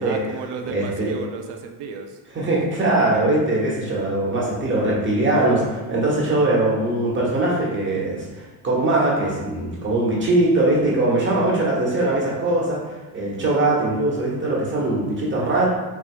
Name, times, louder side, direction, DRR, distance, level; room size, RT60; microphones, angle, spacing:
voice 1, 0.0-2.2, right 5 dB, 70° right, 5 dB, 0.7 m, -33 dB
voice 2, 0.7-1.1 2.3-15.7, right 2 dB, 25° right, -4 dB, 1.4 m, -21 dB
4.6 x 4.2 x 2.3 m, 1.2 s
supercardioid pair, 105°, 43 cm